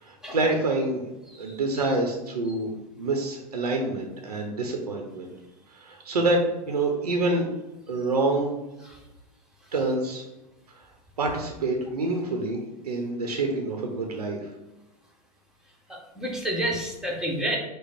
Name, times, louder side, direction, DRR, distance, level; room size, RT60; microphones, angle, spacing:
voice 1, 0.0-1.0 1.4-5.3 5.7-7.5 7.9-8.6 9.7-10.2 10.7-10.9 11.2-12.6 12.8-14.5, right 2 dB, 85° right, 2 dB, 0.7 m, -27 dB
voice 2, 15.9-17.6, right 1 dB, 5° right, -2 dB, 1.3 m, -29 dB
5.3 x 2.1 x 4.1 m, 1.0 s
hypercardioid pair, 95°, 19 cm